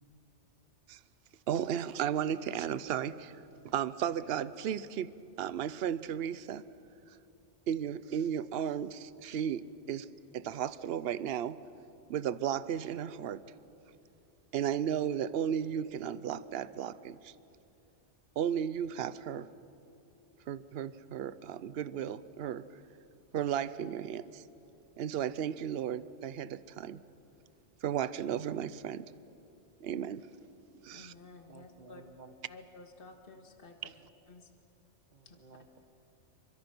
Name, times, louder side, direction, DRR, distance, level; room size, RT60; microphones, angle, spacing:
voice 1, 1.5-3.4 3.6-5.1 5.4-6.6 7.7-10.1 10.3-11.6 12.1-13.4 14.5-17.3 18.4-19.5 20.5-22.6 23.3-24.4 25.0-27.0 27.8-29.1 29.8-30.3 30.8-31.1 33.8-33.9, right 9 dB, 60° right, 16 dB, 0.9 m, -34 dB
voice 2, 30.9-32.0 32.5-33.9 34.3-34.5 35.2-35.4, left 3 dB, 50° left, 5 dB, 1.8 m, -53 dB
voice 3, 31.5-32.3 35.1-35.8, right 4 dB, 40° right, 8 dB, 1.4 m, -54 dB
27.5 x 24.0 x 6.1 m, 2.8 s
omnidirectional pair, 1.2 m